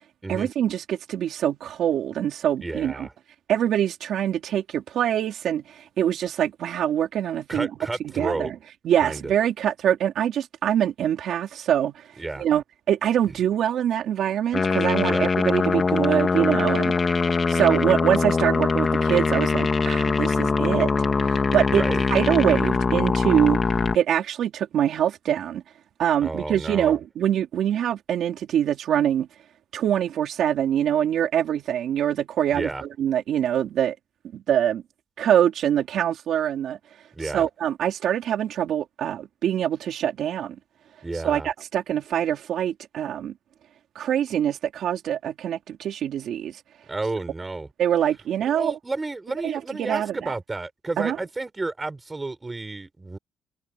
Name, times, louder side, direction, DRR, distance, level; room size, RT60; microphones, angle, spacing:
voice 1, 0.3-3.1 3.5-7.7 8.2-8.6 8.8-12.1 12.4-16.9 17.3-20.9 21.2-21.8 22.1-23.6 23.9-25.6 26.0-29.3 29.7-34.0 34.3-34.8 35.2-36.8 37.2-40.6 41.2-43.3 44.0-46.6 47.8-48.7 49.4-50.3 51.0-51.2, right 10 dB, 60° right, 4.0 m, -24 dB
voice 2, 2.6-3.1 7.5-8.5 9.0-9.3 12.2-12.4 15.0-15.3 21.7-22.0 26.2-27.0 32.5-32.8 37.1-37.5 41.0-41.5 46.9-47.7 48.5-53.2, right 3 dB, 15° right, 5.6 m, -31 dB
sound 1, 14.5-24.0, left 4 dB, 25° left, 2.2 m, -22 dB
cardioid pair, 160°, 0 cm